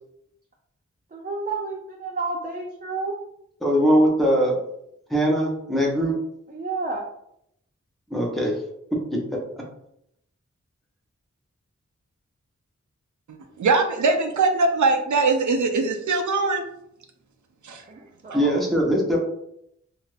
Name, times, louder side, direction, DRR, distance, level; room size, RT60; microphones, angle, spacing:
voice 1, 1.1-3.2 6.5-7.0 17.7-18.6, right 3 dB, 30° right, 0 dB, 0.4 m, -31 dB
voice 2, 3.6-4.6 5.1-6.2 8.1-8.6 8.9-9.4 18.3-19.2, equal, ahead, -3 dB, 0.7 m, -21 dB
voice 3, 13.6-16.6 17.6-17.8, right 3 dB, 90° right, 5 dB, 0.5 m, -21 dB
2.6 x 2.4 x 3.3 m, 0.76 s
wide cardioid pair, 70°, 29 cm